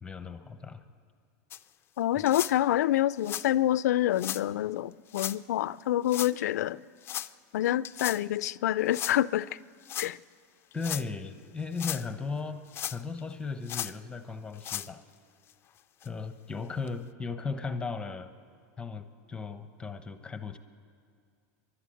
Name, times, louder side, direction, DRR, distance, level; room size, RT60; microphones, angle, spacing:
voice 1, 0.0-0.8 10.7-15.0 16.0-18.3 18.8-20.6, left 4 dB, 10° left, 1.0 m, -36 dB
sound 1, 1.5-1.6 2.3-2.5 3.2-3.5 4.2-4.4 5.1-5.4 6.1-6.3 7.0-7.3 7.8-8.2 8.9-9.2 9.8-10.1 10.7-11.0 11.6-12.1 12.7-13.2 13.7-13.9 14.5-14.9 15.5-15.6 16.0-16.1 16.9-17.0, left 11 dB, 25° left, 0.5 m, -35 dB
voice 2, 2.0-6.8 7.5-9.5 10.0-10.2, left 13 dB, 90° left, 0.4 m, -27 dB
29.5 x 12.0 x 7.8 m
supercardioid pair, 135°, 9 cm